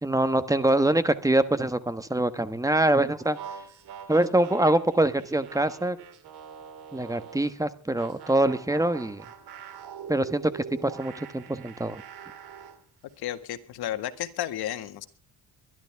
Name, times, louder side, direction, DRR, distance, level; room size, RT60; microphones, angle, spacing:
voice 1, 0.0-3.4 4.1-6.0 6.9-9.2 10.1-12.0, right 1 dB, 10° right, 12 dB, 1.2 m, -24 dB
sound 1, 3.2-7.5 8.0-12.8, right 7 dB, 75° right, 2.7 m, -44 dB
voice 2, 13.2-15.1, left 12 dB, 75° left, 9 dB, 1.8 m, -32 dB
23.0 x 12.5 x 3.5 m, 0.34 s
cardioid pair, 110°, 38 cm